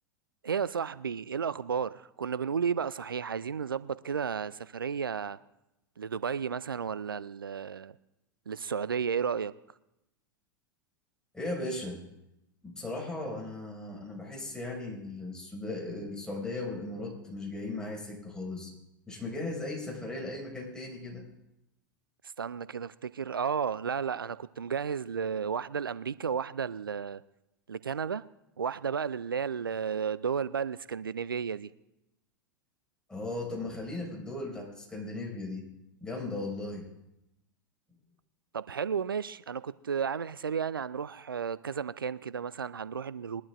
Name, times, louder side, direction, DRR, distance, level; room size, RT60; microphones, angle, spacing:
voice 1, 0.4-5.4 6.0-8.0 8.5-9.5 22.4-27.2 27.7-28.2 28.6-31.7 38.5-43.4, right 7 dB, 85° right, 0.4 m, -33 dB
voice 2, 11.3-12.0 12.6-18.7 19.1-21.3 33.1-35.7 36.0-36.8, left 2 dB, 5° left, 5.6 m, -37 dB
21.5 x 12.0 x 2.5 m
figure-of-eight pair, 90°, 11 cm